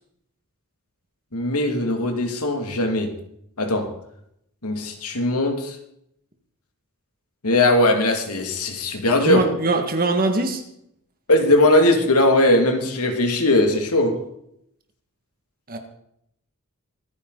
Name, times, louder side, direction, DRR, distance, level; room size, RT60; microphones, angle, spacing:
voice 1, 1.3-3.1 3.6-3.9 4.6-5.8 7.4-9.5 11.3-14.2, left 1 dB, 90° left, 4 dB, 2.6 m, -19 dB
voice 2, 9.2-10.6 15.7-15.8, right 2 dB, 40° right, 5 dB, 2.1 m, -22 dB
24.0 x 10.0 x 4.1 m, 0.73 s
head